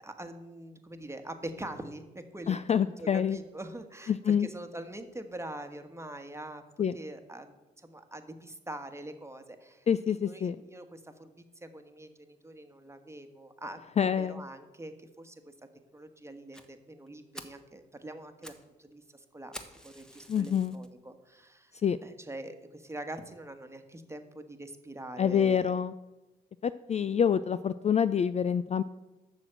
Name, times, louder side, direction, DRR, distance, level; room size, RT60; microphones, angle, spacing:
voice 1, 0.0-6.6 6.9-13.8 14.2-15.5 15.9-19.6 19.8-21.7 22.0-25.8 27.0-27.1, right 1 dB, 15° right, 7 dB, 1.3 m, -44 dB
voice 2, 2.5-3.4 4.1-4.5 6.8-7.0 9.9-10.6 14.0-14.4 20.3-20.8 21.8-22.0 25.2-25.9 26.6-28.8, left 8 dB, 35° left, 14 dB, 0.3 m, -27 dB
Fire, 16.5-16.7 17.1-17.2 17.3-17.6 18.2-18.7 18.9-19.0 19.5-20.9 21.5-21.6 22.1-22.2 22.5-22.6 22.9-23.0, equal, 5° left, 1.3 m, -47 dB
7.5 x 6.4 x 7.6 m, 1.1 s
hypercardioid pair, 50°, 20 cm